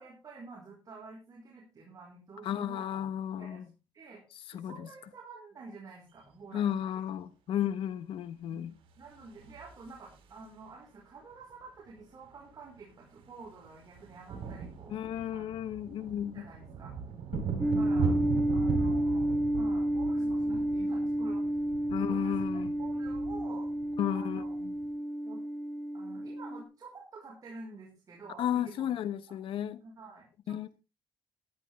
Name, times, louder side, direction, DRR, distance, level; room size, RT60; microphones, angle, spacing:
voice 1, 0.0-3.0 3.4-3.6 3.9-4.2 4.5-6.6 6.9-7.1 8.5-8.6 9.0-15.0 15.3-15.5 16.3-16.9 17.6-18.2 18.5-21.4 21.9-22.5 22.8-23.7 24.1-24.5 25.2-25.4 25.9-29.0 29.8-30.7, right 3 dB, 40° right, 5.0 m, -49 dB
voice 2, 2.4-3.6 4.5-4.9 6.5-8.7 14.9-16.4 17.3-17.4 21.9-22.7 24.0-24.7 28.4-29.8 30.5-30.7, left 10 dB, 75° left, 1.1 m, -33 dB
sound 1, 9.1-10.7 12.0-12.1 12.3-12.5 12.8-24.9, right 6 dB, 80° right, 4.1 m, -38 dB
sound 2, 17.6-26.6, right 1 dB, 5° right, 2.5 m, -31 dB
15.0 x 11.0 x 3.6 m
cardioid pair, 120°, 9 cm